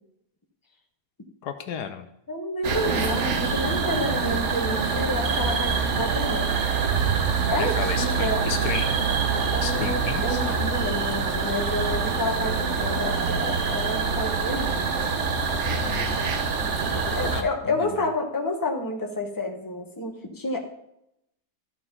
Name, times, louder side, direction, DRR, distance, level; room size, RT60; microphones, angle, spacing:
voice 1, 1.4-2.1 7.6-8.9 9.6-10.6 15.8-18.0, left 7 dB, 75° left, 8 dB, 1.3 m, -34 dB
voice 2, 2.3-6.6 7.5-8.4 9.5-14.9 17.1-20.6, left 1 dB, 15° left, 2 dB, 1.2 m, -29 dB
sound 1, 2.6-17.4, right 5 dB, 50° right, 1.1 m, -25 dB
13.0 x 4.9 x 5.5 m, 0.80 s
omnidirectional pair, 1.8 m